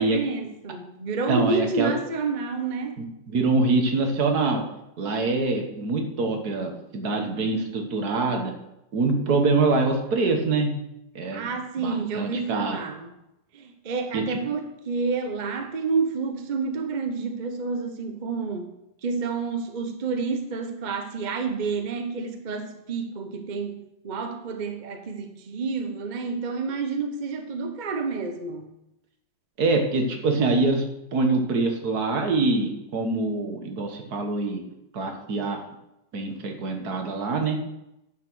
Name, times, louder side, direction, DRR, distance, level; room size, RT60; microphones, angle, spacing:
voice 1, 0.0-2.9 11.3-13.1 13.5-18.7 19.0-28.7, right 4 dB, 35° right, 6 dB, 0.7 m, -29 dB
voice 2, 1.3-1.9 3.0-4.6 5.0-8.5 8.9-10.8 11.2-11.5 11.8-12.8 14.1-14.4 29.6-30.9 31.1-34.6 34.9-35.6 36.1-37.6, right 3 dB, 55° right, 4 dB, 1.8 m, -24 dB
10.5 x 5.9 x 6.2 m, 0.88 s
omnidirectional pair, 2.0 m